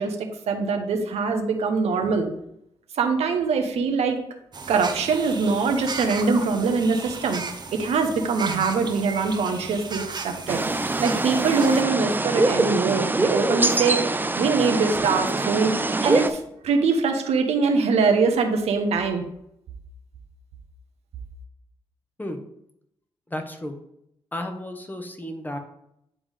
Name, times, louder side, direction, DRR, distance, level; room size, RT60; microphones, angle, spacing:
voice 1, 0.0-2.3 3.0-4.2 4.7-7.4 7.7-10.6 11.0-14.1 14.4-16.4 16.6-19.2, right 4 dB, 75° right, 5 dB, 0.9 m, -23 dB
sound 1, 4.5-11.8, right 4 dB, 40° right, 1.0 m, -35 dB
sound 2, 10.5-16.3, right 2 dB, 20° right, 0.6 m, -24 dB
voice 2, 23.3-23.7 24.3-25.6, left 1 dB, 15° left, 5 dB, 1.2 m, -33 dB
9.7 x 3.6 x 3.6 m, 0.77 s
supercardioid pair, 55°, 11 cm